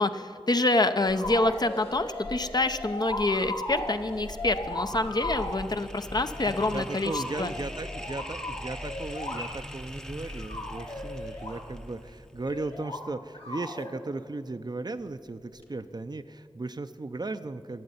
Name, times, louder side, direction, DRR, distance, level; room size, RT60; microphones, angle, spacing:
voice 1, 0.0-7.5, left 2 dB, 45° left, 9 dB, 0.7 m, -27 dB
sound 1, 1.1-5.6 6.3-9.8 10.2-11.6 12.4-13.0 13.3-13.9 15.6-15.7, left 2 dB, 80° left, 2.5 m, -37 dB
sound 2, 3.9-13.0, equal, 5° left, 0.7 m, -42 dB
voice 2, 6.7-17.8, right 2 dB, 45° right, 10 dB, 0.6 m, -36 dB
12.0 x 7.6 x 9.7 m, 2.2 s
wide cardioid pair, 45°, 10 cm